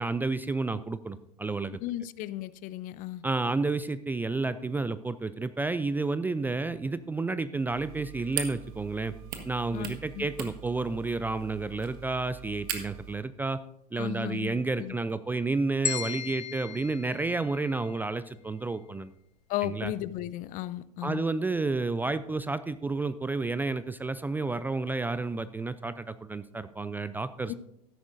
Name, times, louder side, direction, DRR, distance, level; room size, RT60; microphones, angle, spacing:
voice 1, 0.0-1.8 3.2-9.1 9.4-13.6 13.9-19.1 19.6-19.9 21.0-27.5, right 3 dB, 10° right, 14 dB, 0.3 m, -31 dB
voice 2, 1.8-3.2 9.7-10.3 14.0-15.0 19.5-21.3 27.5-27.6, left 14 dB, 45° left, 17 dB, 0.5 m, -35 dB
sound 1, 7.7-13.1, right 9 dB, 50° right, 1.6 m, -40 dB
sound 2, 15.8-18.0, left 7 dB, 85° left, 1.3 m, -36 dB
13.5 x 10.0 x 2.6 m, 0.77 s
hypercardioid pair, 95°, 20 cm